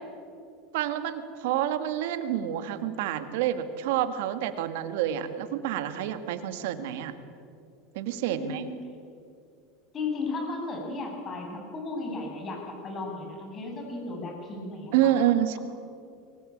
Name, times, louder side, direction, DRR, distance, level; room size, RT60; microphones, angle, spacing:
voice 1, 0.7-7.1 7.9-8.6 14.9-15.6, right 11 dB, 75° right, 9 dB, 2.0 m, -28 dB
voice 2, 8.2-8.7 9.9-15.1, left 3 dB, 35° left, 2 dB, 7.8 m, -35 dB
24.0 x 19.5 x 8.7 m, 2.4 s
supercardioid pair, 110°, 0 cm